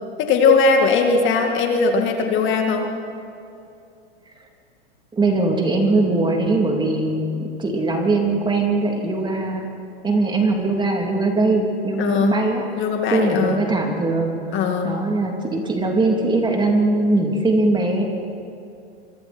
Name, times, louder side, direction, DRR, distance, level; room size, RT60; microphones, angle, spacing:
voice 1, 0.2-2.9 12.0-12.4 12.8-13.6 14.5-15.0, left 4 dB, 35° left, 3 dB, 2.3 m, -19 dB
voice 2, 5.1-9.7 10.0-12.7 13.1-18.0, right 2 dB, 15° right, 1 dB, 3.2 m, -21 dB
26.5 x 24.0 x 4.5 m, 2.6 s
hypercardioid pair, 120°, 32 cm